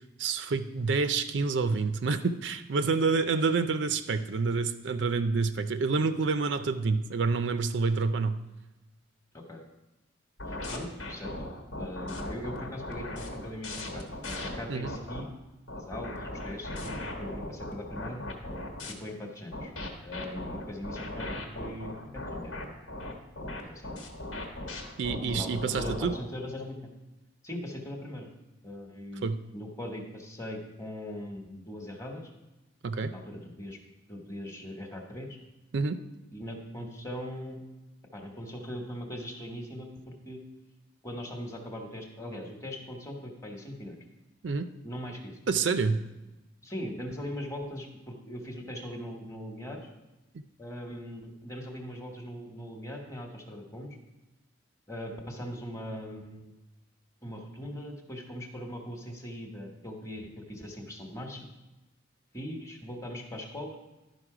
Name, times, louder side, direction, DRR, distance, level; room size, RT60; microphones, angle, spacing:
voice 1, 0.2-8.4 14.7-14.9 25.0-26.1 29.2-29.4 32.8-33.1 35.7-36.0 44.4-44.7 45.5-46.0, right 4 dB, 65° right, 10 dB, 0.4 m, -28 dB
sound 1, 10.4-15.2 15.7-18.9 19.5-26.2, left 1 dB, 80° left, 1.3 m, -38 dB
voice 2, 10.5-11.3 11.8-15.3 15.7-18.2 18.9-19.7 20.0-22.7 23.5-23.9 25.2-26.9 27.4-28.3 28.6-32.3 33.1-33.8 34.1-35.3 36.3-37.6 38.1-40.4 41.0-44.0 44.8-45.4 46.6-49.8 50.6-53.9 54.9-56.5 57.2-61.5 62.3-63.8, equal, 15° left, 2 dB, 1.1 m, -40 dB
11.5 x 5.2 x 4.8 m, 1.0 s
head